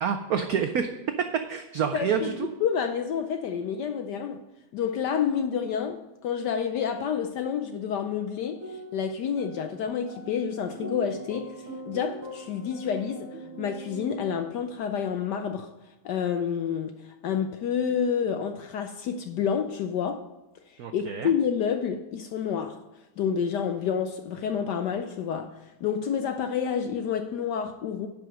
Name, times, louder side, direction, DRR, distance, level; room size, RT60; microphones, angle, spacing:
voice 1, 0.0-0.9 1.5-2.5 20.8-21.3, right 7 dB, 80° right, 0.8 m, -28 dB
voice 2, 1.9-4.4 4.7-15.7 16.0-20.3 20.9-22.8 23.2-28.1, left 7 dB, 75° left, 1.0 m, -29 dB
sound 1, 8.4-14.3, right 2 dB, 40° right, 2.3 m, -41 dB
10.5 x 5.0 x 6.3 m
omnidirectional pair, 2.3 m